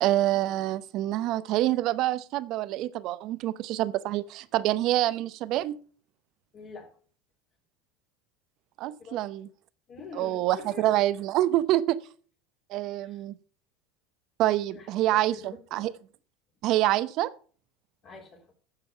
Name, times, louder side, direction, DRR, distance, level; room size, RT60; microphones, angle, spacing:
voice 1, 0.0-5.8 8.8-9.5 10.1-12.0 12.7-13.3 14.4-15.9 16.6-17.3, right 14 dB, 55° right, 0.7 m, -26 dB
voice 2, 6.5-6.9 8.8-9.2 9.9-10.9 13.0-13.2 14.7-15.9 18.0-18.5, left 4 dB, 45° left, 3.3 m, -46 dB
9.8 x 6.7 x 5.6 m
hypercardioid pair, 95°, 0 cm